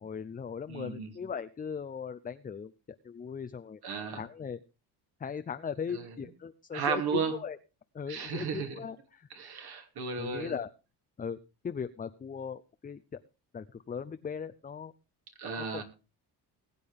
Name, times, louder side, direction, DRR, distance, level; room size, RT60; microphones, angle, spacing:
voice 1, 0.0-2.7 3.0-3.8 4.1-4.6 5.2-7.6 7.9-9.3 10.2-10.7 11.2-11.4 11.6-13.0 13.5-14.9 15.6-15.8, left 6 dB, 20° left, 0.5 m, -38 dB
voice 2, 0.7-1.1 3.8-4.2 5.9-6.2 6.7-7.4 8.1-8.8 9.3-10.5 15.4-15.8, right 6 dB, 65° right, 2.8 m, -34 dB
20.0 x 8.4 x 3.5 m
cardioid pair, 100°, 41 cm